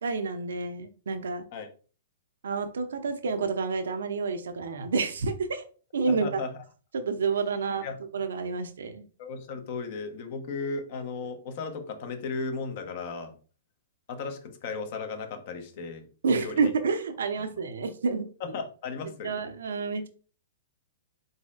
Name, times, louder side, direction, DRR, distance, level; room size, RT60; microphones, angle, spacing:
voice 1, 0.0-1.4 2.4-5.6 5.9-6.3 6.9-7.9 8.1-9.0 16.2-18.3 19.2-20.1, right 4 dB, 80° right, 0.6 m, -29 dB
voice 2, 6.1-6.6 7.8-8.0 9.2-13.3 14.1-16.0 16.3-16.7 17.4-17.5 18.4-19.3, left 4 dB, 50° left, 0.9 m, -35 dB
4.0 x 3.9 x 2.4 m
hypercardioid pair, 135°, 0 cm